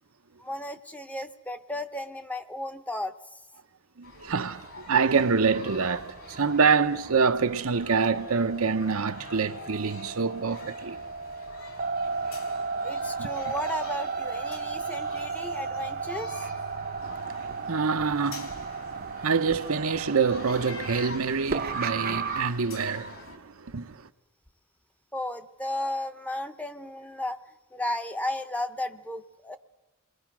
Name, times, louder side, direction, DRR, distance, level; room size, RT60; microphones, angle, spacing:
voice 1, 0.4-3.4 12.8-16.3 25.1-27.4 27.7-29.6, left 1 dB, 5° left, 0.8 m, -34 dB
sound 1, 4.0-23.4, left 3 dB, 60° left, 3.5 m, -46 dB
voice 2, 4.0-11.0 13.2-13.3 17.0-24.0, right 5 dB, 75° right, 0.8 m, -26 dB
sound 2, 4.5-22.5, right 5 dB, 40° right, 0.7 m, -35 dB
28.5 x 21.5 x 6.1 m
head